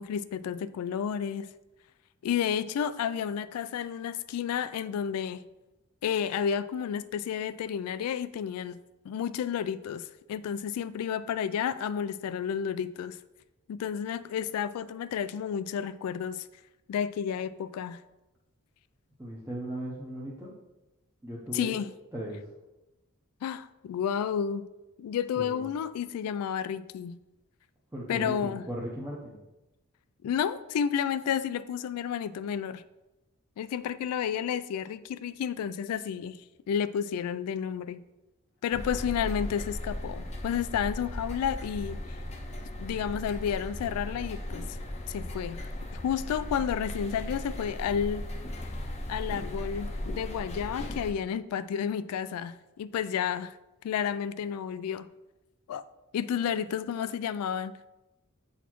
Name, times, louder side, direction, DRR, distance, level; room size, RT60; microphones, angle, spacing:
voice 1, 0.0-1.5 2.2-5.4 6.0-8.8 9.0-13.2 13.7-16.5 16.9-18.0 21.5-21.9 23.4-24.7 25.0-27.2 28.1-28.6 30.2-32.8 33.6-36.4 36.7-38.0 38.6-42.0 42.8-44.8 45.1-45.6 45.9-48.3 49.1-53.6 53.8-55.1 55.7-55.8 56.1-57.8, left 8 dB, 85° left, 0.3 m, -31 dB
voice 2, 19.2-20.5 21.2-21.8 22.1-22.4 25.4-25.7 27.9-29.4 38.8-39.3, right 1 dB, 10° right, 0.7 m, -38 dB
sound 1, 38.7-51.1, left 1 dB, 30° left, 0.6 m, -37 dB
8.2 x 4.0 x 3.0 m
head